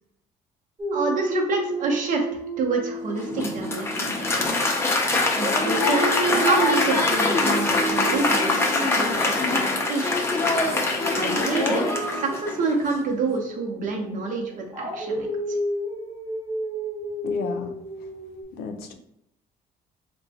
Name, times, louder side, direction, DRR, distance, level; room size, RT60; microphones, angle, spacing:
Dog, 0.8-5.0 5.3-10.3 11.4-18.4, right 1 dB, 20° right, 0.9 m, -32 dB
voice 1, 0.9-2.3 2.6-4.2 5.3-10.1 11.1-11.9 12.1-15.6, right 3 dB, 55° right, 1 dB, 0.8 m, -27 dB
Applause, 3.1-12.7, left 2 dB, 15° left, 0.5 m, -23 dB
voice 2, 17.2-17.7 18.6-18.9, left 5 dB, 80° left, 6 dB, 0.5 m, -32 dB
4.0 x 2.2 x 2.7 m, 0.78 s
cardioid pair, 125°, 16 cm